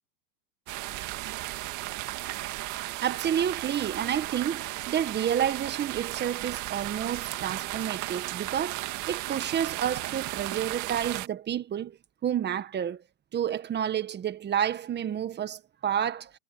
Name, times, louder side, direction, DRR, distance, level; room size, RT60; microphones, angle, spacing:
sound 1, 0.7-11.3, right 17 dB, 40° right, 2.0 m, -35 dB
voice 1, 3.0-13.0 13.3-16.3, right 9 dB, 20° right, 1.5 m, -30 dB
supercardioid pair, 130°, 48 cm